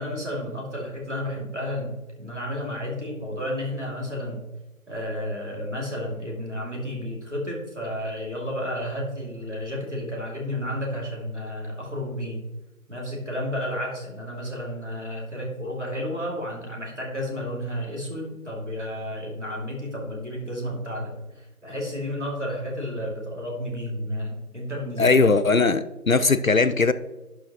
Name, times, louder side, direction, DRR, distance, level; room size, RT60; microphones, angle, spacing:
voice 1, 0.0-4.5 4.9-12.4 12.9-25.2 25.5-25.6, equal, 50° right, -2 dB, 2.7 m, -32 dB
voice 2, 25.0-26.9, left 4 dB, 65° left, 14 dB, 0.5 m, -19 dB
11.0 x 6.3 x 3.0 m, 1.1 s
figure-of-eight pair, 180°, 45 cm